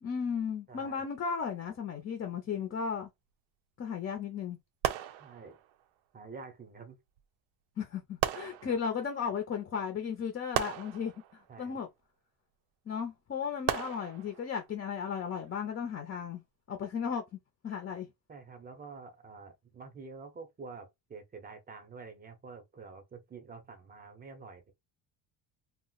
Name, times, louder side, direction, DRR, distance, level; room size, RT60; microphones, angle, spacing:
voice 1, 0.0-3.1 3.8-4.6 7.8-11.9 12.9-16.4 16.7-17.2 17.6-18.1, left 6 dB, 30° left, 0.5 m, -35 dB
voice 2, 0.7-1.0 5.2-5.6 6.1-7.0 8.6-8.8 11.5-11.8 18.3-24.7, right 4 dB, 20° right, 0.6 m, -48 dB
sound 1, 4.8-5.8 7.2-7.3 8.2-9.2 10.5-11.8 13.7-14.7 15.4-15.7, right 11 dB, 75° right, 0.6 m, -36 dB
2.4 x 2.1 x 3.8 m
cardioid pair, 145°, 48 cm